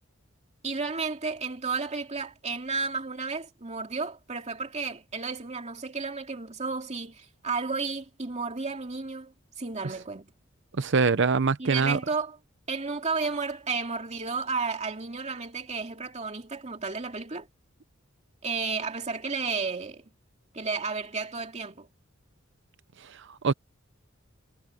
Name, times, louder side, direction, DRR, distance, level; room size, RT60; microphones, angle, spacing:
voice 1, 0.6-10.3 11.6-12.4 12.7-17.5 18.4-20.0 20.5-21.9, right 4 dB, 35° right, 2.6 m, -32 dB
voice 2, 10.7-12.0 23.0-23.5, right 4 dB, 60° right, 0.7 m, -24 dB
head